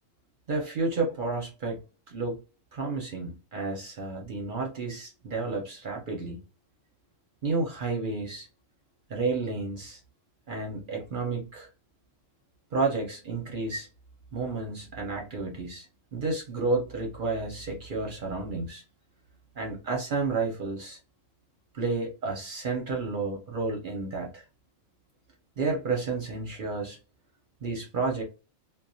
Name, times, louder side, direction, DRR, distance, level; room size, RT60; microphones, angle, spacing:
voice 1, 0.5-1.8 2.1-2.4 2.7-6.4 7.4-8.5 9.1-10.0 10.5-11.7 12.7-13.9 14.3-15.9 16.1-18.8 19.6-21.0 21.7-24.4 25.6-27.0 27.6-28.2, right 3 dB, 55° right, 0.6 m, -31 dB
2.2 x 2.1 x 2.6 m
omnidirectional pair, 1.3 m